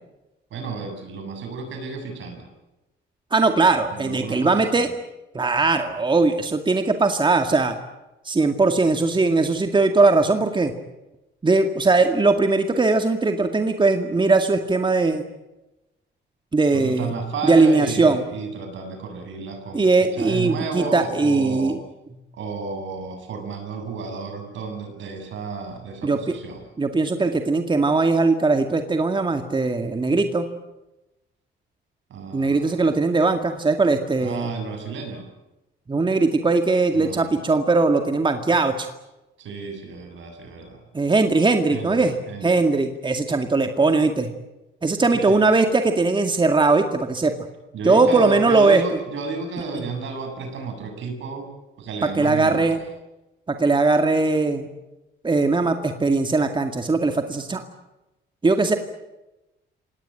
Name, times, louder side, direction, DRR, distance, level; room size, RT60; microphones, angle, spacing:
voice 1, 0.5-2.5 3.9-4.9 16.7-21.8 22.3-26.6 32.1-32.9 34.2-35.3 36.9-37.3 39.4-40.8 41.7-42.6 45.1-45.5 47.7-51.5 51.8-52.9, right 4 dB, 70° right, 5 dB, 7.8 m, -32 dB
voice 2, 3.3-4.9 5.3-7.8 8.2-10.7 11.4-15.2 16.5-17.1 17.4-18.2 19.7-21.8 26.0-26.2 26.8-30.5 32.3-34.5 35.9-38.9 40.9-42.2 42.4-44.3 44.8-47.3 47.8-48.8 52.0-52.8 53.5-54.7 55.2-57.6 58.4-58.8, right 3 dB, 25° right, 6 dB, 2.1 m, -20 dB
26.5 x 19.0 x 9.1 m, 0.99 s
cardioid pair, 90°, 20 cm